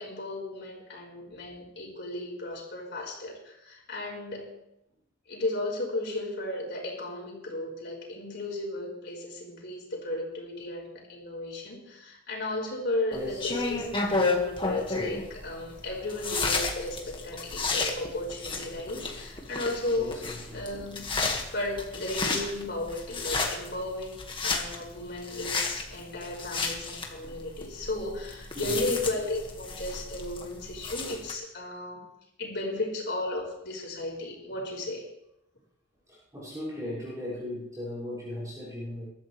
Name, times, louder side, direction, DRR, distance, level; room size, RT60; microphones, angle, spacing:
voice 1, 0.0-4.5 5.3-20.2 20.5-21.0 21.5-32.0 32.4-35.0, left 2 dB, 60° left, -1 dB, 5.1 m, -35 dB
sound 1, 13.1-31.3, left 3 dB, 25° left, 1.9 m, -32 dB
voice 2, 13.1-13.4 20.0-20.6 28.5-28.8 36.3-39.1, left 1 dB, 20° right, -9 dB, 6.2 m, -37 dB
23.0 x 13.0 x 3.4 m, 0.82 s
head